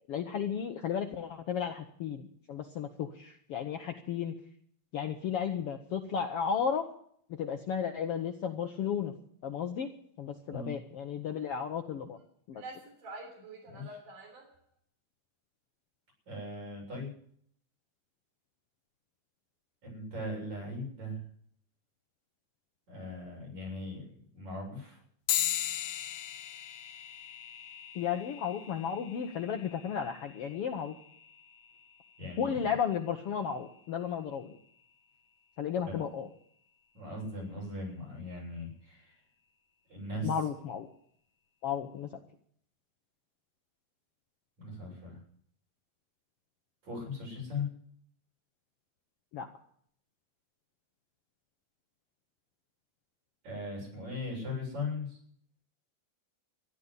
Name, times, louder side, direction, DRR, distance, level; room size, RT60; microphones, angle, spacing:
voice 1, 0.1-4.3 4.9-6.8 7.4-9.1 9.4-9.9 10.2-12.2 12.5-12.6 28.0-30.9 32.4-34.5 35.6-36.3 40.2-40.9 41.6-42.1 49.3-49.5, left 7 dB, 65° left, 5 dB, 1.5 m, -34 dB
sound 1, 12.2-12.3 12.5-14.5, right 2 dB, 90° right, 4.9 m, -46 dB
voice 2, 13.7-14.0 16.3-17.1 19.8-21.2 22.9-25.0 32.2-32.7 35.8-36.0 37.0-39.2 39.9-40.4 44.6-45.2 46.8-47.7 53.4-55.2, left 2 dB, 65° right, -1 dB, 8.8 m, -39 dB
sound 2, 25.3-35.1, left 12 dB, 85° left, 2.5 m, -40 dB
14.5 x 11.0 x 8.3 m, 0.63 s
omnidirectional pair, 3.6 m